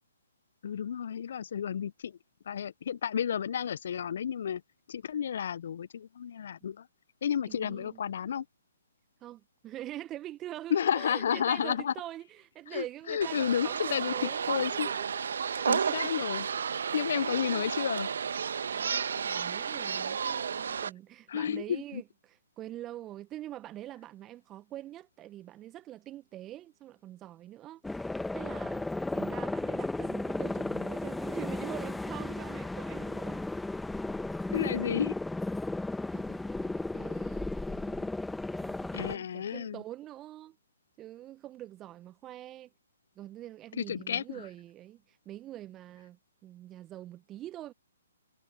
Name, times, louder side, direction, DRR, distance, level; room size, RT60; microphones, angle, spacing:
voice 1, 0.6-2.2 2.5-4.6 4.9-6.9 7.2-8.4 10.7-11.9 12.7-14.9 15.6-16.5 16.9-18.1 21.3-22.0 34.5-35.1 38.9-39.8 43.8-44.5, left 8 dB, 55° left, 0.6 m, -31 dB
voice 2, 7.5-8.0 9.2-15.1 15.4-16.1 17.1-17.6 18.7-28.9 29.1-33.5 36.1-38.1 38.6-40.6 41.0-42.7 43.2-47.7, right 13 dB, 20° right, 1.2 m, -45 dB
sound 1, 13.2-20.9, right 6 dB, 65° right, 1.6 m, -32 dB
sound 2, 27.8-39.2, left 2 dB, 5° left, 1.3 m, -34 dB
figure-of-eight pair, 130°, 0 cm